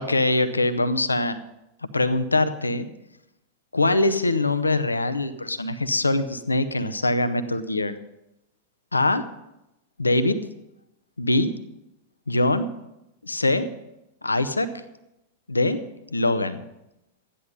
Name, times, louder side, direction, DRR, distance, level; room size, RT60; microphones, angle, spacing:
voice 1, 0.0-1.4 1.9-2.9 3.7-7.9 8.9-9.2 10.0-10.4 11.2-11.5 12.3-12.7 13.2-13.7 14.2-14.7 15.5-15.8 16.1-16.6, left 2 dB, 80° left, 12 dB, 0.7 m, -23 dB
13.0 x 10.0 x 5.3 m, 0.89 s
figure-of-eight pair, 90°, 0 cm